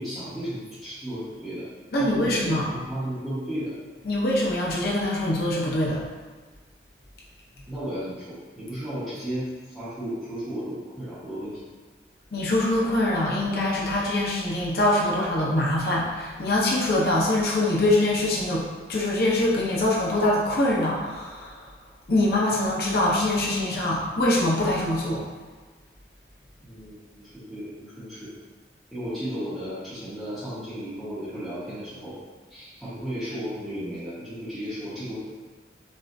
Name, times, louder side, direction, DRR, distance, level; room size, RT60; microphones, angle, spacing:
voice 1, 0.0-1.7 1.9-3.7 7.7-11.6 26.6-28.3 28.9-32.1 32.5-35.2, equal, ahead, -14 dB, 1.2 m, -34 dB
voice 2, 1.9-2.7 4.0-6.0 12.3-21.7 22.1-25.2, left 1 dB, 55° left, -5 dB, 0.6 m, -24 dB
5.3 x 2.4 x 2.6 m, 1.4 s
head